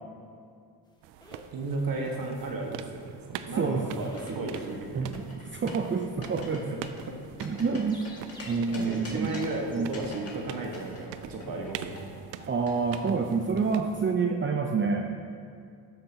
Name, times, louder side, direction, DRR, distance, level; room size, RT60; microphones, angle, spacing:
sound 1, 1.0-10.0, left 1 dB, 10° left, 1.5 m, -51 dB
sound 2, 1.0-14.1, right 10 dB, 80° right, 0.5 m, -45 dB
voice 1, 1.5-5.1 6.5-6.8 7.1-7.2 8.7-12.0, right 2 dB, 50° right, 1 dB, 1.5 m, -34 dB
sound 3, 4.0-4.8 5.1-5.9 6.2-6.6 6.8-8.4 8.7-9.6 9.9-13.0, left 3 dB, 35° left, 2.1 m, -45 dB
voice 2, 5.5-6.6 7.4-8.0 8.5-9.3 9.7-9.9 12.5-15.1, right 5 dB, 30° right, 2 dB, 0.6 m, -27 dB
12.5 x 6.7 x 2.8 m, 2.3 s
supercardioid pair, 65°, 43 cm